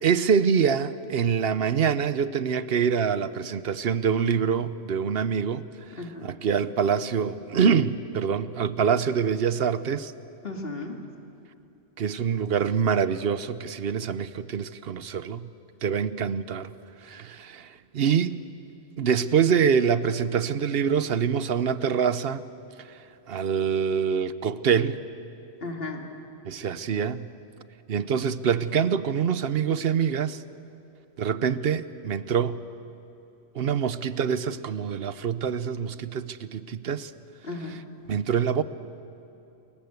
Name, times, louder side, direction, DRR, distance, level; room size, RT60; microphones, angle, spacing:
voice 1, 0.0-5.7 6.2-10.1 12.0-15.5 15.8-16.7 17.0-18.4 19.0-22.4 23.3-25.0 26.5-27.3 27.9-30.4 31.2-32.6 33.5-37.1 38.1-38.6, right 7 dB, 60° right, 0.9 m, -25 dB
voice 2, 6.0-6.3 10.4-11.0 25.6-26.0 37.4-37.8, left 2 dB, 50° left, 2.6 m, -35 dB
29.5 x 21.5 x 8.1 m
omnidirectional pair, 1.3 m